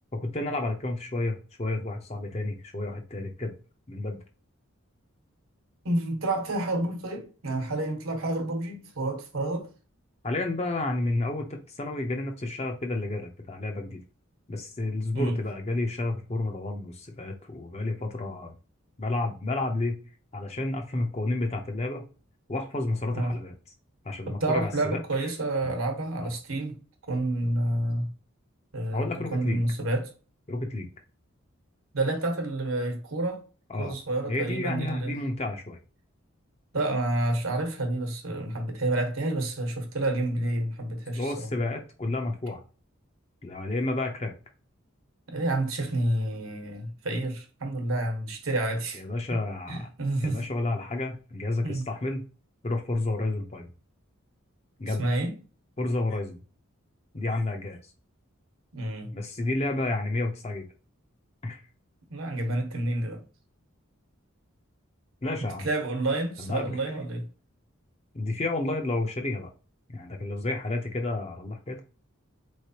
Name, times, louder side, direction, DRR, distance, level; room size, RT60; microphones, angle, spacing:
voice 1, 0.1-3.5 3.9-4.2 10.2-14.0 14.5-18.6 19.0-20.0 20.3-22.0 22.5-23.5 24.0-25.0 26.2-26.3 28.9-29.6 30.5-30.9 33.7-34.0 34.3-35.8 41.2-42.6 43.4-44.3 48.9-49.9 50.2-52.2 52.6-53.7 54.8-55.1 55.8-56.4 57.1-57.8 59.1-60.7 61.4-61.6 65.2-65.7 66.4-66.8 68.1-69.5 69.9-71.8, left 2 dB, 30° left, 0.6 m, -31 dB
voice 2, 5.8-9.7 15.1-15.4 23.1-23.4 24.3-26.8 27.1-28.1 28.7-30.1 31.9-33.4 33.8-35.2 36.7-41.5 45.3-49.0 49.3-49.4 49.7-50.4 51.6-51.9 54.9-55.3 58.7-59.2 62.1-63.2 65.6-67.3, right 2 dB, 75° right, 1.1 m, -29 dB
4.1 x 3.2 x 2.8 m
head